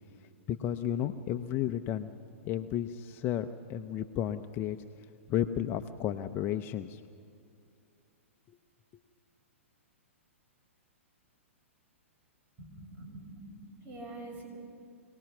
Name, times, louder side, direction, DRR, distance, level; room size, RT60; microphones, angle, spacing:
voice 1, 0.5-2.1 2.4-4.8 5.3-7.0, left 11 dB, 30° left, 7 dB, 0.6 m, -32 dB
voice 2, 12.6-14.5, right 2 dB, 25° right, 1 dB, 6.1 m, -45 dB
25.5 x 18.5 x 6.1 m, 2.4 s
hypercardioid pair, 125°, 7 cm